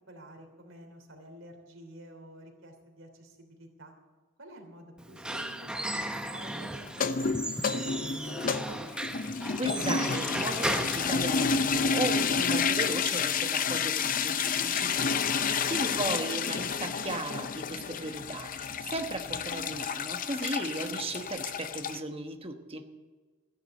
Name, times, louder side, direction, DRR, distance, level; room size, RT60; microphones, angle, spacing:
voice 1, 0.1-3.9 4.4-8.4 15.1-15.5, right 1 dB, 90° right, 3 dB, 3.1 m, -50 dB
Squeak / Wood, 5.0-11.9, right 1 dB, 5° right, 0.7 m, -36 dB
sound 1, 6.9-22.0, left 6 dB, 45° left, 0.5 m, -30 dB
voice 2, 9.6-22.9, right 2 dB, 30° right, 5 dB, 1.1 m, -36 dB
14.5 x 11.0 x 7.6 m, 1.3 s
head